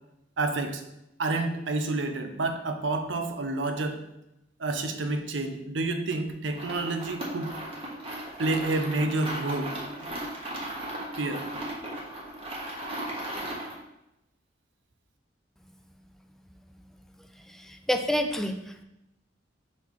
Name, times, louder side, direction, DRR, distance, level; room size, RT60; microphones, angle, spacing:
voice 1, 0.4-0.8 1.2-4.0 4.6-7.5 8.4-9.7 11.2-11.5, right 2 dB, 90° right, 6 dB, 0.7 m, -29 dB
sound 1, 6.5-13.8, right 1 dB, 30° right, 1.4 m, -36 dB
voice 2, 17.5-18.8, left 1 dB, ahead, 6 dB, 0.4 m, -29 dB
5.4 x 4.2 x 4.6 m, 0.87 s
head